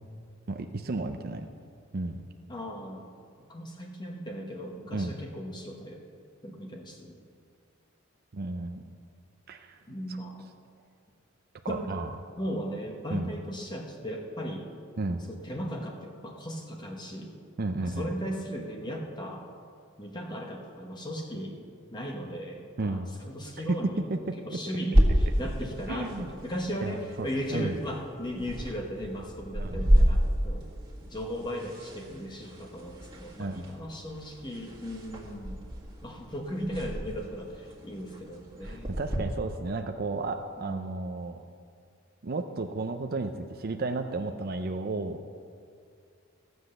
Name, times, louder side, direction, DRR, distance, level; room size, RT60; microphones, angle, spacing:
voice 1, 0.5-1.5 1.9-2.2 4.9-5.1 8.3-8.9 9.5-9.8 11.7-12.1 13.1-13.3 15.0-15.2 17.6-18.1 22.8-23.1 24.1-24.2 25.9-26.3 26.8-27.8 29.6-29.8 33.4-33.6 38.6-41.4 42.2-45.2, right 3 dB, 50° right, 5 dB, 0.6 m, -33 dB
voice 2, 2.5-3.1 3.5-6.1 6.4-7.2 9.9-10.5 11.7-11.9 12.4-14.7 15.3-17.4 17.8-19.5 20.0-21.6 21.9-30.7 31.0-35.6 36.0-39.0 40.6-41.0, equal, 20° left, 1 dB, 1.1 m, -37 dB
sound 1, 24.9-39.2, equal, 25° right, 1.9 m, -30 dB
14.5 x 7.9 x 6.6 m, 2.3 s
head